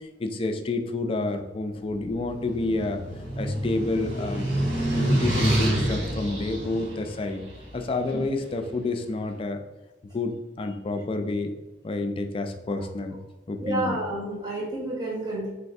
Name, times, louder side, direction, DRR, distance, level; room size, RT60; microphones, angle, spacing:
voice 1, 0.0-3.0 3.4-4.5 4.9-7.4 7.7-9.6 10.1-11.5 11.8-13.2 13.5-14.0, left 2 dB, 30° left, 6 dB, 0.3 m, -29 dB
sound 1, 2.0-8.3, right 1 dB, 60° right, 1.1 m, -27 dB
voice 2, 13.6-15.5, right 1 dB, 20° right, -4 dB, 0.8 m, -30 dB
4.0 x 3.3 x 2.6 m, 1.1 s
head